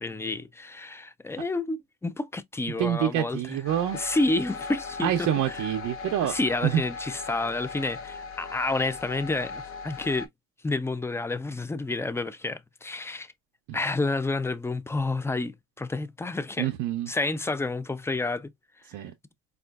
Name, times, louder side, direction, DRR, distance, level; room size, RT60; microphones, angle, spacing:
voice 1, 0.0-3.6 3.9-5.7 6.2-10.3 10.6-13.3 13.7-16.7 17.1-18.5 18.8-19.0, left 2 dB, 10° left, 0.4 m, -30 dB
voice 2, 2.8-4.0 5.0-6.8 16.6-17.1 18.9-19.1, right 11 dB, 90° right, 0.6 m, -27 dB
sound 1, 3.6-10.3, left 4 dB, 45° left, 0.7 m, -38 dB
4.3 x 2.4 x 2.3 m
cardioid pair, 90°, 30 cm